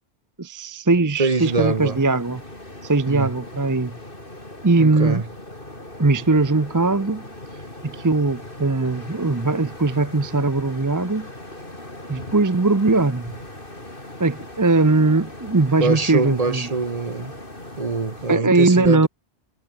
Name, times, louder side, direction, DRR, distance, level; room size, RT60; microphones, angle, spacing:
voice 1, 0.4-2.4 2.8-4.0 4.6-5.2 6.0-7.3 7.8-11.3 12.1-13.4 14.2-16.7 18.3-19.1, right 3 dB, 20° right, 0.7 m, -20 dB
voice 2, 1.2-2.0 3.1-3.3 4.8-5.3 15.8-17.3 17.8-19.1, right 4 dB, 35° right, 1.1 m, -24 dB
sound 1, 1.4-18.4, left 1 dB, 50° left, 6.0 m, -39 dB
omnidirectional pair, 1.2 m